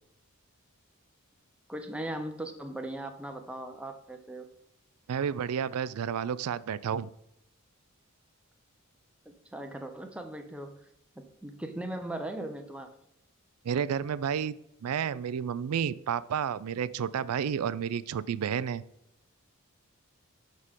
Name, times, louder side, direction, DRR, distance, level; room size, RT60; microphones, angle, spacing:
voice 1, 1.7-4.5 9.3-10.8 11.2-12.9, right 1 dB, 5° right, 6 dB, 0.6 m, -38 dB
voice 2, 5.1-7.1 13.6-14.6 14.8-18.8, right 8 dB, 85° right, 17 dB, 0.4 m, -31 dB
6.6 x 6.2 x 3.6 m, 0.80 s
head